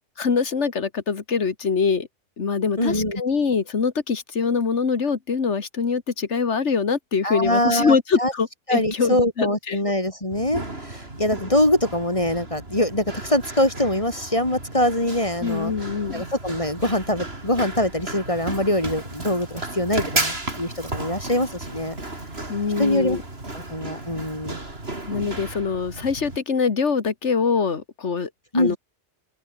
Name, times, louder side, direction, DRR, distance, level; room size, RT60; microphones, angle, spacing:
voice 1, 0.2-2.1 2.4-9.8 15.4-16.2 22.5-23.2 25.1-28.3 28.5-28.8, left 5 dB, 85° left, 2.0 m, -24 dB
voice 2, 2.8-3.2 7.2-8.3 8.7-15.7 16.1-22.0 22.8-23.2 23.5-24.6 28.5-28.8, left 1 dB, 30° left, 3.6 m, -23 dB
Run, 10.3-26.4, right 2 dB, 60° right, 4.8 m, -34 dB
open air
omnidirectional pair, 1.2 m